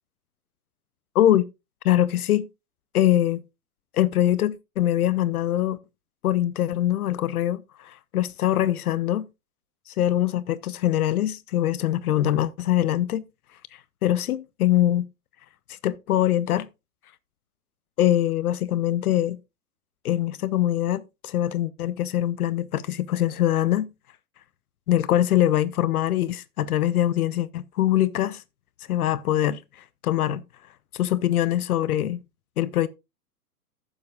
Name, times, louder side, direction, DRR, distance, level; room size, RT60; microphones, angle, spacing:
voice 1, 1.1-1.5 1.8-2.5 2.9-3.4 3.9-5.8 6.2-9.3 9.9-13.3 14.0-15.0 15.8-16.7 18.0-19.4 20.0-23.9 24.9-28.4 28.9-29.6 30.0-30.4 30.9-32.2 32.6-32.9, left 12 dB, 70° left, 0.7 m, -23 dB
14.5 x 7.3 x 2.4 m
hypercardioid pair, 115°, 47 cm